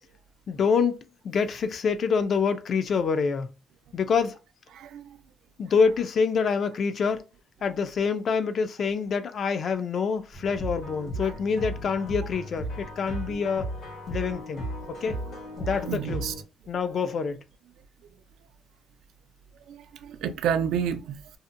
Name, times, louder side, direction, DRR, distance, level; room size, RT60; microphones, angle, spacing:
voice 1, 0.5-1.0 1.2-3.5 3.9-4.4 5.6-7.2 7.6-13.7 14.1-14.6 14.9-15.2 15.6-16.2 16.7-17.4, left 5 dB, 55° left, 0.4 m, -26 dB
voice 2, 4.7-5.2 11.0-11.3 13.3-13.4 15.6-16.3 19.7-21.2, right 8 dB, 90° right, 0.3 m, -31 dB
sound 1, 10.3-16.4, right 1 dB, 75° left, 1.2 m, -35 dB
2.7 x 2.1 x 2.5 m
cardioid pair, 110°, 0 cm